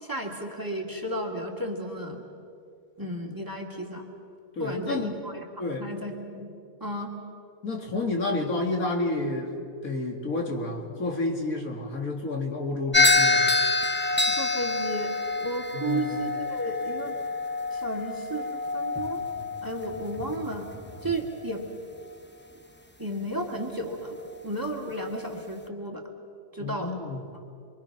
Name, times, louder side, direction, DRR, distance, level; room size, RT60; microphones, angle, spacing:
voice 1, 0.0-2.2 3.0-4.1 4.6-5.5 5.8-6.5 6.8-7.1 14.3-17.1 17.7-19.2 19.6-20.7 21.0-21.7 23.0-24.2 24.4-26.0 26.5-26.9, right 1 dB, 15° right, 1 dB, 2.1 m, -33 dB
voice 2, 4.5-5.1 5.6-5.9 7.6-13.5 15.7-16.2 26.6-27.2, left 2 dB, 75° left, 1 dB, 2.8 m, -30 dB
sound 1, 12.9-21.3, left 3 dB, 10° left, 0.8 m, -27 dB
28.0 x 23.0 x 5.9 m, 2.4 s
omnidirectional pair, 1.5 m